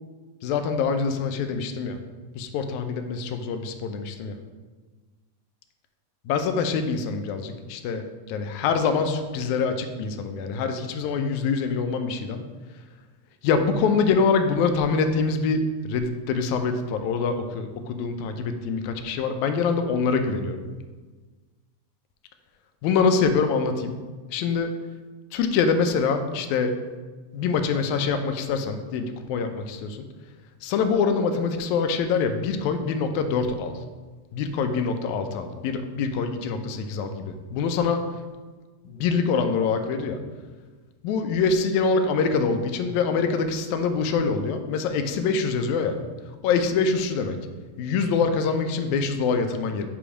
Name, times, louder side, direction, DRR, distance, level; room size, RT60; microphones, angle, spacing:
voice 1, 0.4-2.0 2.4-4.4 6.3-12.4 13.4-20.6 22.8-24.0 24.3-24.8 25.3-26.7 27.3-30.1 30.6-33.8 34.3-38.1 38.9-40.2 41.0-46.0 46.4-47.4 47.8-49.9, left 5 dB, 80° left, 7 dB, 1.9 m, -25 dB
8.5 x 3.0 x 4.8 m, 1.4 s
omnidirectional pair, 3.4 m